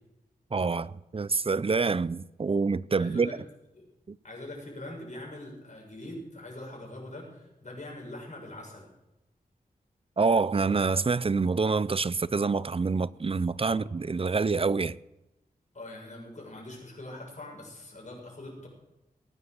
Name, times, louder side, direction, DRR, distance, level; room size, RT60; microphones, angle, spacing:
voice 1, 0.5-3.3 4.1-4.2 10.2-15.0, right 4 dB, 35° right, 0.5 m, -26 dB
voice 2, 3.0-3.3 3.7-3.9 4.2-8.9 13.6-13.9 15.7-18.7, left 1 dB, 50° left, 7.2 m, -43 dB
19.5 x 9.7 x 6.7 m
wide cardioid pair, 65°, 16 cm